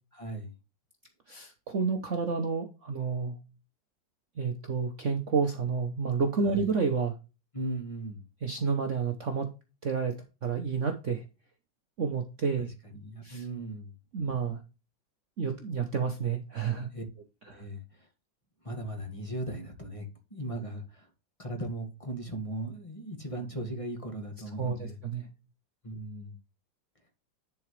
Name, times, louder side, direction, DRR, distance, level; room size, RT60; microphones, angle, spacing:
voice 1, 0.1-0.5 6.5-6.7 7.5-8.3 12.6-13.9 16.9-18.1 18.6-21.1 21.4-25.0 25.8-26.4, right 1 dB, 20° left, 1.8 m, -38 dB
voice 2, 1.3-3.4 4.4-7.2 8.4-9.5 9.8-11.2 12.0-12.7 13.2-13.4 14.1-14.6 15.4-16.9 17.5-17.6 24.6-25.3, right 5 dB, 50° right, 1.0 m, -30 dB
10.5 x 4.9 x 3.2 m
omnidirectional pair, 2.0 m